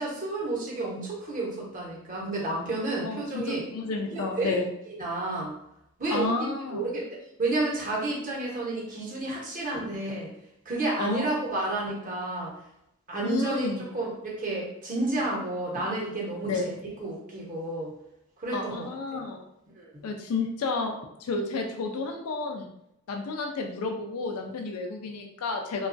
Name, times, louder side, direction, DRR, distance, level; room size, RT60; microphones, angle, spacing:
voice 1, 0.0-3.6 4.1-5.5 6.0-7.0 7.4-10.3 10.6-12.5 13.1-17.9 18.4-19.2 19.8-20.1, right 2 dB, 35° right, -4 dB, 0.9 m, -31 dB
voice 2, 3.0-4.7 6.1-6.9 11.0-11.3 13.2-13.8 15.7-15.8 16.4-16.8 18.5-19.4 20.0-20.9 21.2-22.7 23.1-25.9, left 3 dB, 80° left, 3 dB, 0.4 m, -31 dB
2.9 x 2.3 x 2.5 m, 0.80 s
head